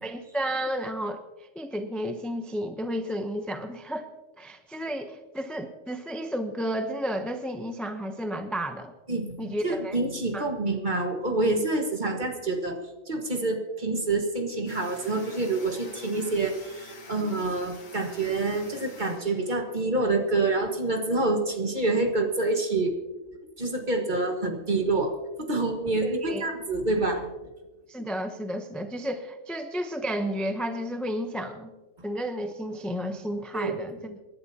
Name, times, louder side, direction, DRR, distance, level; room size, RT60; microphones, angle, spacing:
voice 1, 0.0-4.1 4.4-8.9 9.4-10.0 10.3-10.5 26.0-26.5 27.9-31.7 32.0-34.2, equal, ahead, 6 dB, 0.5 m, -32 dB
voice 2, 9.1-12.8 13.1-22.9 23.6-25.1 25.4-27.3 33.5-33.7, right 2 dB, 35° right, 3 dB, 1.7 m, -27 dB
sound 1, 14.7-19.8, left 3 dB, 85° left, 2.0 m, -48 dB
27.5 x 11.5 x 2.8 m, 1.1 s
omnidirectional pair, 1.4 m